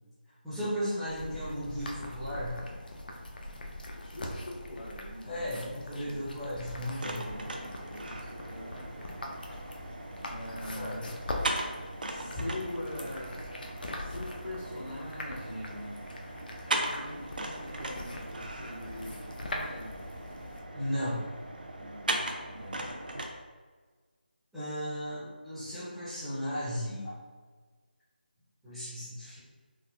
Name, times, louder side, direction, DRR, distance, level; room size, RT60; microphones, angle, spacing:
voice 1, 0.4-2.5 5.2-7.2 10.7-10.9 20.7-21.2 24.5-27.2 28.6-29.4, equal, ahead, -16 dB, 0.6 m, -35 dB
sound 1, 1.1-20.6, left 1 dB, 60° left, 0.5 m, -42 dB
voice 2, 3.9-6.2 6.7-9.1 10.3-11.1 12.1-13.4 13.9-16.0 16.6-20.0 21.7-22.1 22.5-22.9, left 1 dB, 80° left, -8 dB, 1.0 m, -43 dB
sound 2, 7.0-23.3, right 1 dB, 55° right, 0.4 m, -39 dB
3.4 x 2.2 x 2.3 m, 1.4 s
figure-of-eight pair, 160°, 6 cm